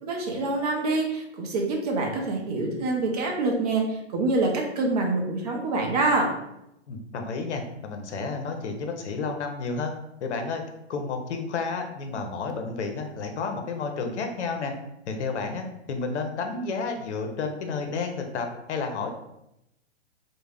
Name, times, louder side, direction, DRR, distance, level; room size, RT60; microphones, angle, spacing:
voice 1, 0.0-6.3, right 2 dB, 35° right, 1 dB, 0.5 m, -26 dB
voice 2, 6.9-9.9 10.2-10.6 10.9-14.7 15.1-19.1, left 4 dB, 70° left, 4 dB, 0.7 m, -31 dB
2.3 x 2.1 x 3.3 m, 0.85 s
hypercardioid pair, 145°, 36 cm